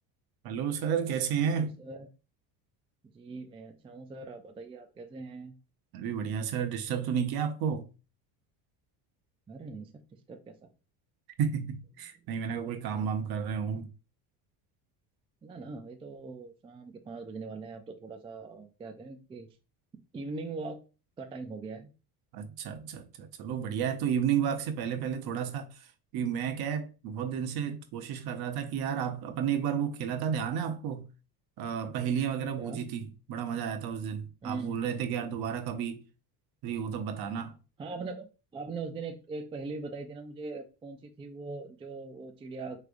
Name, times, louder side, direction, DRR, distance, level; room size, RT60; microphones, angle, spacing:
voice 1, 0.4-1.7 5.9-7.9 11.4-13.9 22.3-25.7 26.1-31.1 31.6-36.0 36.6-37.6, right 8 dB, 60° right, 0.9 m, -32 dB
voice 2, 1.4-2.1 3.1-5.5 9.5-9.9 10.3-10.7 12.6-13.1 15.4-19.5 20.1-20.8 21.2-21.9 32.6-32.8 34.4-34.9 37.8-42.8, right 3 dB, 15° right, 0.4 m, -41 dB
4.7 x 3.4 x 2.5 m
cardioid pair, 130°, 42 cm